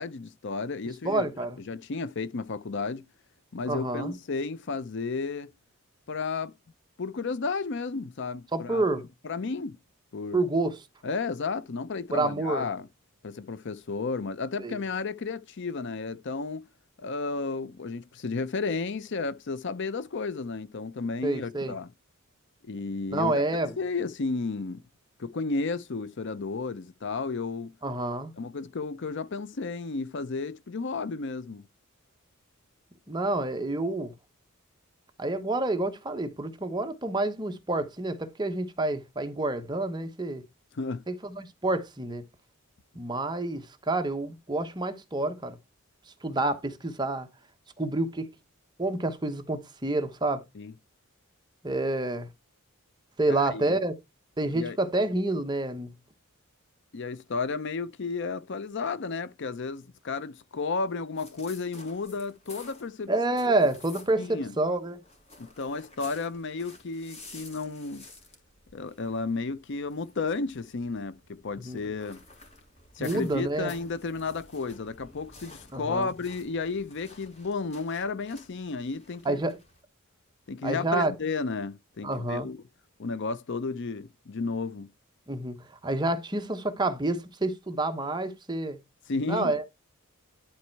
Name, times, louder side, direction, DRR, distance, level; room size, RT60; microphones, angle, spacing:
voice 1, 0.0-1.3 1.7-3.0 3.5-5.5 6.1-6.5 7.0-8.8 9.2-9.8 10.1-10.4 11.0-12.9 13.2-16.6 17.0-21.9 22.6-24.8 25.2-27.7 28.4-31.6 40.7-41.0 50.5-50.7 53.3-53.8 54.5-54.8 56.9-63.1 63.4-63.5 64.2-64.5 65.4-68.1 68.7-72.2 73.0-79.4 80.5-82.6 83.0-84.9 89.1-89.5, left 4 dB, 55° left, 0.6 m, -33 dB
voice 2, 1.0-1.6 3.7-4.1 8.5-9.0 10.3-10.8 12.1-12.7 14.6-14.8 21.2-21.7 23.1-23.7 27.8-28.3 33.1-34.1 35.2-40.4 41.1-42.2 42.9-45.6 46.2-47.3 47.8-48.3 48.8-50.4 51.6-52.3 53.2-53.9 54.4-55.9 63.1-65.0 71.6-71.8 73.0-73.7 75.7-76.1 79.2-79.6 80.6-81.1 82.0-82.5 85.3-88.8 89.3-89.6, right 2 dB, 20° right, 1.0 m, -28 dB
sound 1, 61.1-64.3 64.6-79.8, left 2 dB, 30° left, 2.9 m, -52 dB
11.5 x 4.3 x 4.5 m
head